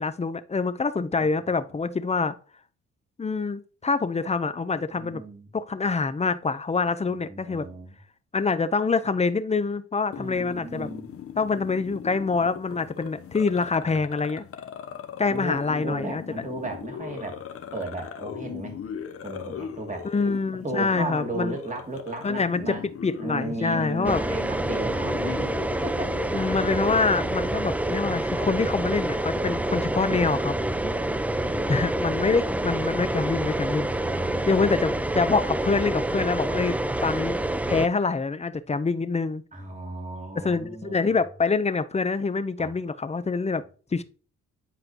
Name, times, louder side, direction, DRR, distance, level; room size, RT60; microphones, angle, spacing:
voice 1, 0.0-2.3 3.2-5.2 5.5-7.7 8.3-10.9 11.4-14.4 15.2-16.2 20.0-21.6 22.2-22.8 23.0-24.2 26.3-30.5 31.7-33.9 34.5-37.4 37.7-39.4 40.4-43.6 43.9-44.0, left 4 dB, 20° left, 0.8 m, -26 dB
voice 2, 4.9-5.5 7.3-7.9 10.2-11.1 15.3-17.4 17.7-18.8 19.2-20.1 20.6-22.8 23.2-25.5 25.8-26.1 29.5-31.8 33.9-34.6 39.5-41.1 42.6-42.7, right 2 dB, 25° right, 2.5 m, -35 dB
sound 1, 10.1-27.3, left 8 dB, 50° left, 0.9 m, -39 dB
sound 2, 24.1-37.9, right 1 dB, 5° right, 0.3 m, -27 dB
9.9 x 4.8 x 3.0 m
cardioid pair, 90°, 30 cm